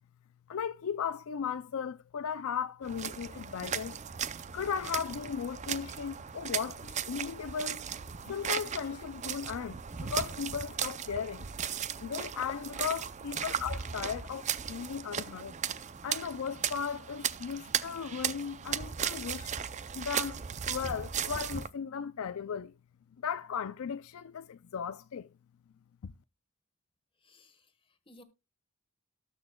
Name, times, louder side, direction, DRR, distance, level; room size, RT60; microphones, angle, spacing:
voice 1, 0.5-4.0 4.5-7.9 8.2-11.5 12.0-15.5 16.0-19.5 19.9-20.4 20.6-22.7 23.2-25.3 26.0-26.1, left 7 dB, 65° left, 0.4 m, -36 dB
sound 1, 2.8-21.7, right 8 dB, 30° right, 0.5 m, -37 dB
voice 2, 27.2-28.2, left 1 dB, 25° left, 1.3 m, -56 dB
19.0 x 6.4 x 2.3 m
head